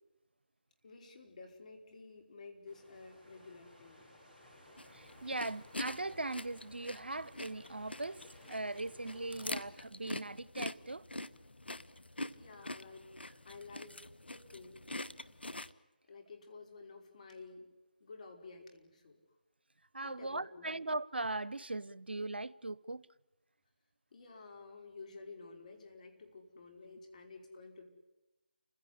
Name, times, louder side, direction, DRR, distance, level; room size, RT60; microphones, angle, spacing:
voice 1, 0.8-4.1 12.3-13.9 14.3-14.8 16.1-17.7 18.0-19.2 20.0-20.7 24.1-27.9, left 4 dB, 45° left, 5.3 m, -52 dB
sound 1, 2.7-9.6, left 1 dB, 5° left, 7.4 m, -59 dB
sound 2, 4.8-15.7, left 1 dB, 85° left, 1.1 m, -45 dB
voice 2, 4.9-11.1 19.9-23.0, right 2 dB, 85° right, 0.8 m, -39 dB
29.0 x 16.5 x 9.9 m
figure-of-eight pair, 155°, 5 cm